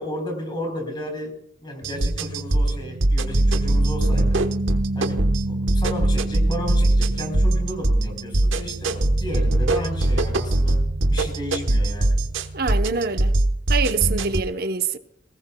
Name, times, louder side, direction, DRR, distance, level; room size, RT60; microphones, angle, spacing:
voice 1, 0.0-4.5 4.9-10.8 11.1-12.2, equal, 25° left, 4.0 m, -33 dB
sound 1, 1.8-14.4, right 1 dB, 90° right, 1.1 m, -21 dB
voice 2, 12.5-13.4 13.7-15.0, right 5 dB, 50° right, 0.9 m, -25 dB
20.0 x 18.5 x 2.3 m
head